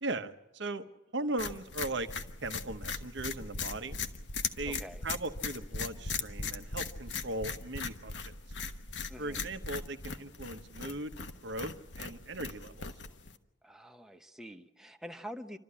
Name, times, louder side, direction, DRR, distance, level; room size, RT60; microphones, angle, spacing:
voice 1, 0.0-0.8 1.1-2.1 2.4-4.0 4.6-8.4 9.2-11.2 11.4-12.9, right 2 dB, 65° right, 9 dB, 1.2 m, -38 dB
sound 1, 1.4-13.4, left 5 dB, 65° left, 1.2 m, -39 dB
voice 2, 4.7-5.0 9.1-9.4 13.6-15.6, equal, 5° right, 6 dB, 0.9 m, -46 dB
28.0 x 13.0 x 9.8 m, 0.95 s
head